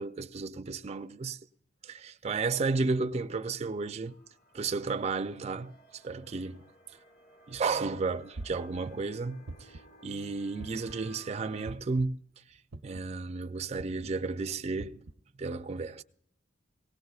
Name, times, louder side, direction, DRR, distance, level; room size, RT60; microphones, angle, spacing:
voice 1, 0.0-1.4 1.8-4.1 4.5-6.6 7.5-12.2 12.8-15.0 15.4-16.0, right 4 dB, 35° right, 0.4 m, -33 dB
sound 1, 4.1-11.7, right 2 dB, 55° left, 1.7 m, -57 dB
sound 2, 8.4-8.8 9.5-9.9 10.6-11.0 11.7-12.0 12.7-13.1 13.8-14.1 14.8-15.1, right 2 dB, 90° right, 0.7 m, -43 dB
18.5 x 17.5 x 2.4 m
head